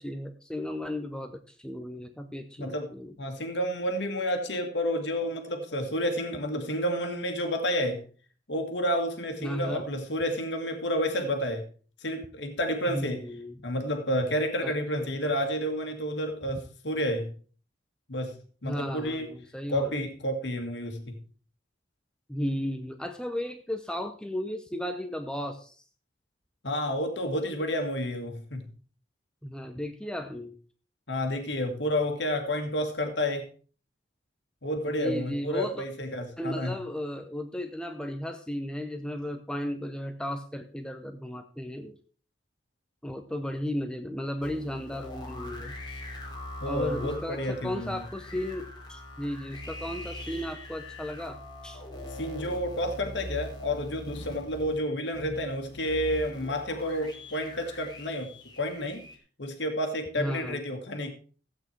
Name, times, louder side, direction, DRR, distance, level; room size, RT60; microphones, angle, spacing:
voice 1, 0.0-3.1 9.4-9.9 12.9-13.5 14.6-15.1 18.6-20.0 22.3-25.8 29.4-30.6 34.9-35.8 36.4-42.0 43.0-45.7 46.7-51.8 60.2-60.6, equal, 5° left, 6 dB, 0.7 m, -35 dB
voice 2, 2.6-2.9 3.2-8.0 8.5-11.7 12.0-13.2 13.6-17.3 18.1-18.4 18.6-19.3 19.7-21.2 26.6-28.7 31.1-33.5 34.6-36.8 46.6-48.0 52.1-59.0 59.4-61.1, equal, 75° left, 4 dB, 1.8 m, -30 dB
sound 1, 44.4-59.2, left 1 dB, 25° left, 3.1 m, -42 dB
15.5 x 8.6 x 4.5 m, 0.41 s
head